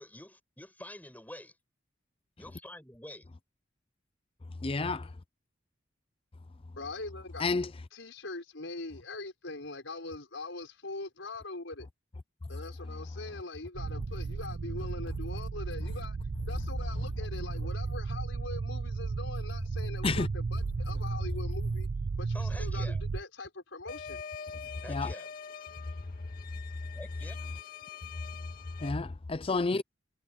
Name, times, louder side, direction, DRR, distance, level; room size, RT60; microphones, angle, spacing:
voice 1, 0.0-1.5 2.4-3.3 22.3-23.0 24.8-25.3 26.9-27.5, left 1 dB, 10° left, 7.3 m, -47 dB
voice 2, 4.6-5.1 7.4-7.7 20.0-20.3 24.9-25.1 28.8-29.8, left 3 dB, 30° left, 0.5 m, -30 dB
voice 3, 6.8-7.5 7.9-11.9 12.5-16.2 16.5-21.9 22.2-24.2, left 2 dB, 75° left, 4.9 m, -42 dB
sound 1, 13.7-23.2, right 4 dB, 45° right, 0.4 m, -34 dB
sound 2, 23.9-28.9, left 7 dB, 50° left, 1.9 m, -45 dB
head